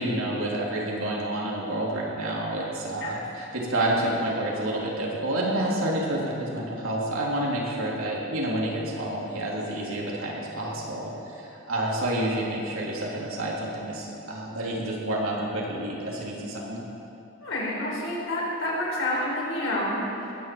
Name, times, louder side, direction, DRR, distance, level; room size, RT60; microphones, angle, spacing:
voice 1, 0.0-16.8, right 1 dB, 80° right, -4 dB, 3.3 m, -29 dB
voice 2, 17.4-20.3, left 1 dB, 65° left, -4 dB, 4.4 m, -28 dB
20.5 x 8.3 x 7.8 m, 2.9 s
head